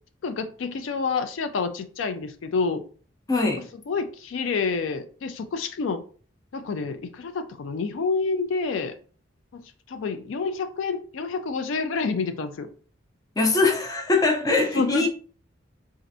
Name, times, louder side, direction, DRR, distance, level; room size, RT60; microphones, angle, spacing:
voice 1, 0.2-2.8 3.9-6.0 6.5-8.9 9.5-9.6 9.9-12.7 14.7-15.1, left 4 dB, 80° left, 0.4 m, -28 dB
voice 2, 3.3-3.6 13.4-15.1, left 3 dB, 20° left, 0.5 m, -22 dB
4.1 x 2.5 x 2.6 m
head